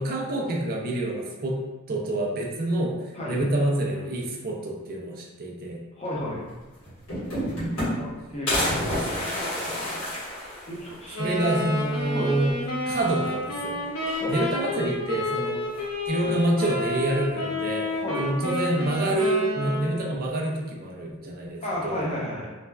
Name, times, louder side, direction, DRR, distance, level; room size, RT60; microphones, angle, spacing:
voice 1, 0.0-5.8 8.8-8.9 11.2-13.8 14.3-15.6 16.1-17.9 18.2-22.2, right 1 dB, 45° right, -1 dB, 0.4 m, -27 dB
voice 2, 6.0-6.4 7.9-8.5 10.7-11.4 12.1-12.3 14.2-14.3 16.2-16.3 17.8-18.3 21.6-22.5, left 1 dB, 30° left, -5 dB, 0.7 m, -32 dB
sound 1, 6.5-6.6 6.8-8.1 8.5-11.1 11.5-11.6 11.8-11.9 13.1-13.6 13.9-14.7 15.7-16.3, equal, 65° left, 1.3 m, -29 dB
Wind instrument woodwind instrument, 11.1-20.2, left 1 dB, 80° left, 0.7 m, -30 dB
3.2 x 2.2 x 2.3 m, 1.2 s
head